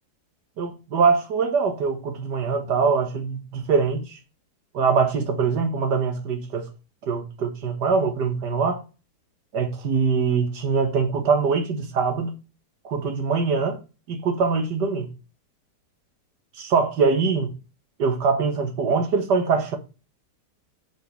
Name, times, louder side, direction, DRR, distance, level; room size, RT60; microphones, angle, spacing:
voice 1, 0.6-4.2 4.7-6.7 7.1-8.8 9.5-12.4 12.8-13.8 14.1-15.1 16.6-17.5 18.0-19.8, right 5 dB, 70° right, 2.0 m, -23 dB
7.7 x 4.9 x 5.1 m
omnidirectional pair, 1.8 m